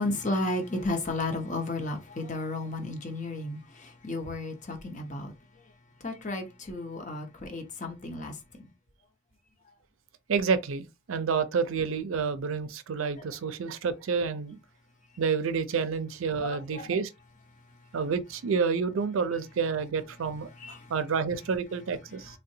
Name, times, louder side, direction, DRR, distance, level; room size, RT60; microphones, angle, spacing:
voice 1, 0.0-5.3 6.0-8.7 13.2-13.3 16.4-17.0 20.5-20.9 22.1-22.4, left 2 dB, 35° left, 0.7 m, -33 dB
voice 2, 10.3-14.6 15.2-17.1 17.9-20.5 20.9-22.4, right 5 dB, 80° right, 0.4 m, -29 dB
3.7 x 2.1 x 2.6 m
head